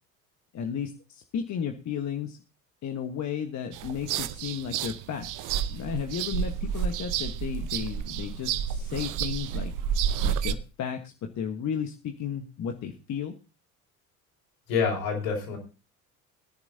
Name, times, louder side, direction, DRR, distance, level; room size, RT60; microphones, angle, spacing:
voice 1, 0.5-2.4 2.8-9.7 10.2-13.4, left 8 dB, 40° left, 5 dB, 1.4 m, -34 dB
sound 1, 3.7-10.5, right 8 dB, 50° right, 0.9 m, -30 dB
voice 2, 14.7-15.6, left 5 dB, 70° left, 1 dB, 6.0 m, -27 dB
20.5 x 10.5 x 2.8 m, 0.31 s
figure-of-eight pair, 65°, 41 cm